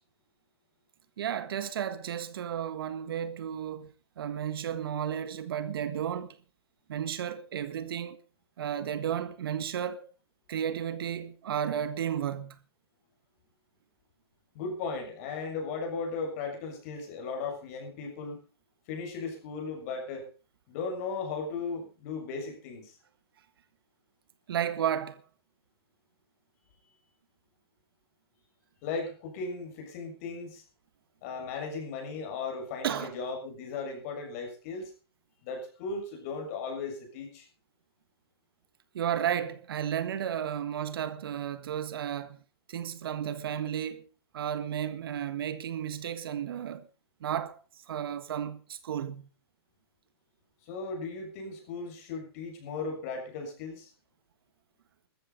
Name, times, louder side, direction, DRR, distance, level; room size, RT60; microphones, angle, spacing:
voice 1, 1.2-6.4 6.9-8.2 8.6-10.1 10.5-12.6 24.5-25.2 32.8-33.2 38.9-42.4 42.7-44.0 44.3-46.9 47.2-47.6 47.9-49.3, right 9 dB, 60° right, 1.6 m, -33 dB
voice 2, 14.5-18.4 18.9-20.2 20.7-22.9 28.8-30.6 31.2-34.9 35.4-37.5 50.6-53.9, left 4 dB, 35° left, 6.7 m, -36 dB
14.5 x 13.5 x 5.2 m
hypercardioid pair, 165°, 13 cm